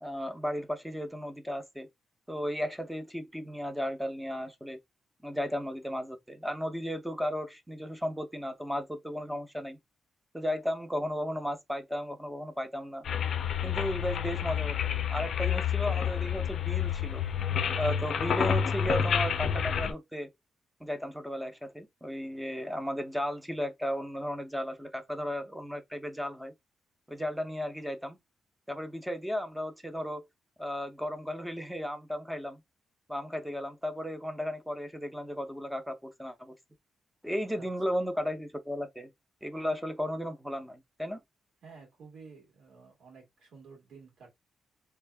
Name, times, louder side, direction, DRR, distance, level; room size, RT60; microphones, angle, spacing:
voice 1, 0.0-1.9 2.3-4.8 5.2-9.8 10.3-13.0 13.6-17.2 17.8-20.3 20.8-26.5 27.1-28.2 28.7-30.3 30.6-32.6 33.1-36.5 37.2-39.1 39.4-41.2, equal, 5° right, 0.6 m, -35 dB
sound 1, 13.0-19.9, left 8 dB, 60° left, 0.4 m, -29 dB
voice 2, 41.6-44.3, right 5 dB, 80° right, 2.2 m, -52 dB
3.4 x 2.4 x 3.4 m
wide cardioid pair, 165°, 0 cm